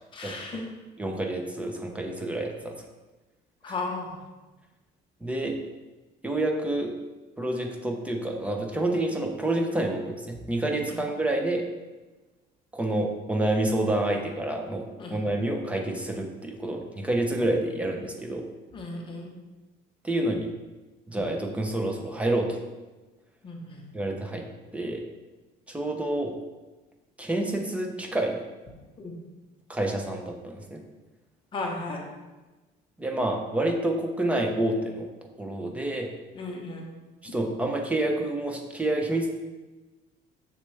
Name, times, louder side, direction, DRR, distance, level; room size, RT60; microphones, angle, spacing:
voice 1, 0.1-0.7 3.6-4.2 10.9-11.0 15.0-15.2 18.7-19.3 23.4-23.8 29.0-29.2 31.5-32.0 36.3-36.9, left 2 dB, 30° left, 0 dB, 1.1 m, -35 dB
voice 2, 1.0-2.7 5.2-5.5 6.2-6.9 7.4-11.6 12.7-18.5 20.0-20.5 21.1-22.6 23.9-24.4 24.7-25.0 25.7-26.3 27.2-28.4 29.7-30.8 33.0-35.1 35.4-36.1 37.3-39.4, right 1 dB, 5° right, 2 dB, 0.7 m, -28 dB
6.6 x 6.5 x 3.4 m, 1.2 s
cardioid pair, 165°, 18 cm